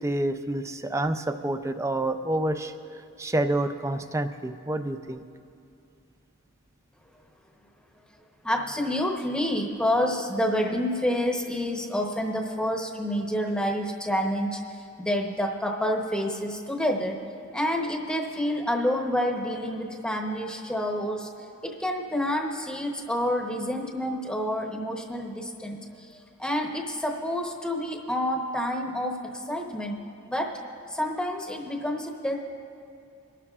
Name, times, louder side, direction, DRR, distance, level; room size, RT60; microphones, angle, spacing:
voice 1, 0.0-5.2, right 1 dB, 15° right, 9 dB, 0.4 m, -28 dB
voice 2, 8.4-17.2 17.5-30.0 30.3-30.6 30.9-32.3, equal, 5° left, 2 dB, 0.9 m, -28 dB
26.0 x 12.5 x 2.4 m, 2.5 s
head